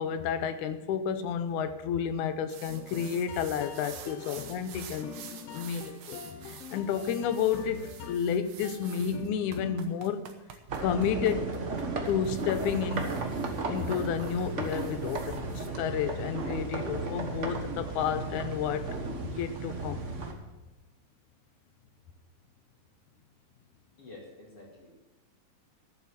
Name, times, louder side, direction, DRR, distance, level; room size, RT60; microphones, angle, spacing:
voice 1, 0.0-5.2 5.5-10.3 10.8-11.5 12.1-13.2 13.7-19.0 19.4-20.0, left 8 dB, 85° left, 11 dB, 2.2 m, -31 dB
sound 1, 2.5-15.7, right 8 dB, 70° right, 2.0 m, -49 dB
sound 2, 2.7-10.0, left 7 dB, 70° left, 1.6 m, -45 dB
sound 3, 10.7-20.3, right 3 dB, 50° right, 0.9 m, -34 dB
voice 2, 24.0-24.9, left 2 dB, 50° left, -4 dB, 3.1 m, -49 dB
13.5 x 7.4 x 7.2 m, 1.1 s
omnidirectional pair, 3.4 m